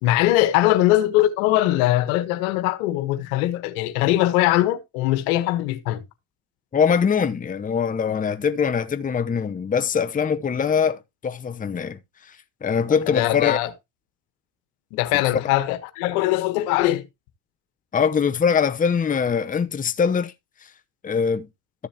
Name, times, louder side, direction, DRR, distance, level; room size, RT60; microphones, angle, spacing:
voice 1, 0.0-6.0 13.1-13.7 14.9-17.0, left 15 dB, 80° left, 1.3 m, -21 dB
voice 2, 6.7-12.0 12.3-12.4 12.6-13.6 17.9-20.3 21.0-21.5, left 6 dB, 20° left, 0.8 m, -22 dB
13.5 x 7.0 x 2.9 m
hypercardioid pair, 75°, 43 cm